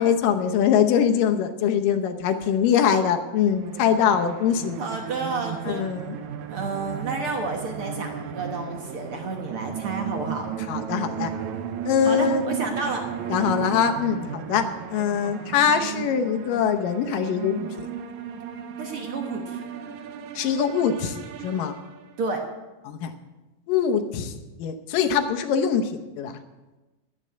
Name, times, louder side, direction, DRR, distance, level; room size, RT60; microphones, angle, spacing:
voice 1, 0.0-4.8 5.7-6.2 10.7-11.3 11.9-12.4 13.3-17.9 20.4-21.7 22.9-23.1 23.7-24.3 24.6-26.4, left 7 dB, 70° left, 6 dB, 2.4 m, -23 dB
sound 1, 3.5-22.3, right 8 dB, 90° right, 1.6 m, -35 dB
voice 2, 4.8-5.8 6.5-10.5 12.0-13.0 14.6-14.7 18.8-19.6 22.2-22.4, right 3 dB, 55° right, 2 dB, 1.6 m, -30 dB
11.5 x 9.6 x 7.9 m, 1.1 s
omnidirectional pair, 4.3 m